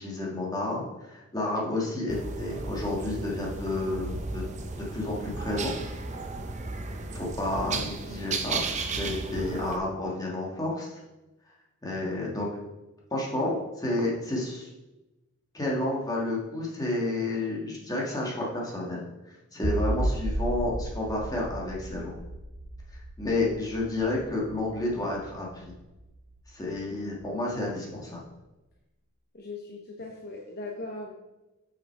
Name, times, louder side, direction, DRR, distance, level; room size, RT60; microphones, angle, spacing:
voice 1, 0.0-4.4 4.9-5.7 7.1-8.6 8.9-10.9 11.8-12.5 13.1-14.7 15.5-19.1 19.5-22.1 23.2-25.7 26.5-28.2, left 2 dB, 15° left, -3 dB, 1.6 m, -30 dB
sound 1, 2.1-9.8, right 3 dB, 35° right, 0.6 m, -34 dB
sound 2, 19.6-26.8, right 1 dB, 90° right, 1.3 m, -34 dB
voice 2, 29.3-31.1, left 2 dB, 45° left, 1 dB, 0.8 m, -39 dB
6.1 x 5.9 x 4.5 m, 1.0 s
head